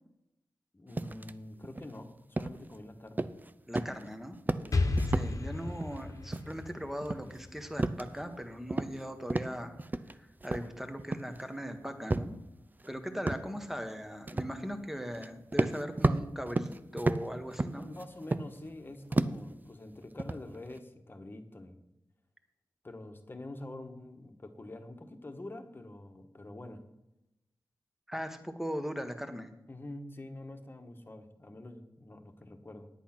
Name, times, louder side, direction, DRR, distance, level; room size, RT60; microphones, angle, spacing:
voice 1, 0.7-3.3 4.6-4.8 17.8-21.8 22.8-26.8 29.7-32.9, left 1 dB, 30° left, 6 dB, 1.4 m, -46 dB
sound 1, 1.0-1.3 1.6-1.9 2.4-2.8 3.2-3.5 3.8-4.1 4.3-5.3 5.7-6.0 6.3-6.7 7.0-8.4 8.7-9.0 9.3-10.1 10.4-11.4 12.1-12.3 12.8-12.9 13.3-13.5 14.3-14.6 15.1-15.3 15.5-18.7 19.1-19.5 19.9-20.8, right 2 dB, 25° right, 0.5 m, -33 dB
voice 2, 3.7-4.4 5.0-9.7 10.1-12.4 12.9-17.9 28.1-29.5, equal, 5° right, 7 dB, 1.4 m, -39 dB
Explosion, 4.7-8.5, left 2 dB, 50° left, 1.3 m, -33 dB
10.5 x 8.4 x 6.0 m, 0.89 s
wide cardioid pair, 75°, 7 cm